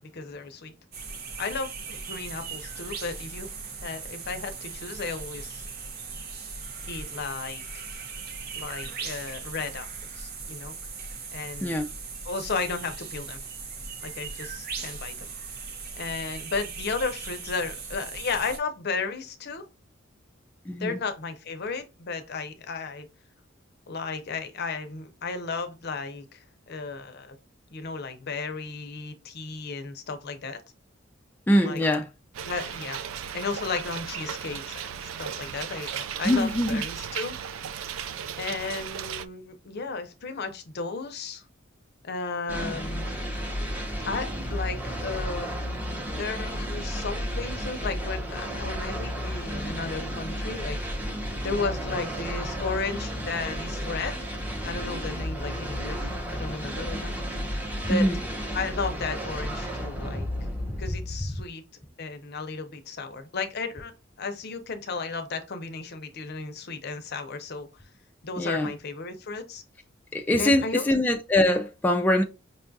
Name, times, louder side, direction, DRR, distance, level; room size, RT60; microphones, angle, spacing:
voice 1, 0.1-0.7 1.4-3.5 3.8-5.6 6.9-7.9 8.5-9.9 10.1-10.8 11.3-11.8 12.2-13.4 14.0-15.3 16.0-19.6 20.8-23.1 23.9-27.4 27.7-30.6 31.6-31.8 32.5-33.0 33.3-37.4 37.8-37.9 38.4-41.4 42.0-43.1 44.0-45.5 46.0-54.2 54.6-57.1 57.8-58.1 58.5-60.3 60.8-61.6 62.0-63.9 64.2-67.7 68.2-69.6 70.4-70.9, left 4 dB, 55° left, 0.6 m, -34 dB
sound 1, 0.9-18.6, right 5 dB, 50° right, 0.7 m, -39 dB
voice 2, 20.7-21.0 31.5-32.1 36.2-36.8 57.9-58.2 68.4-68.7 70.1-72.2, left 1 dB, 10° left, 0.3 m, -23 dB
sound 2, 32.3-39.3, right 8 dB, 80° right, 0.3 m, -36 dB
sound 3, 42.5-61.5, equal, 10° right, 0.7 m, -32 dB
5.3 x 2.3 x 2.6 m
head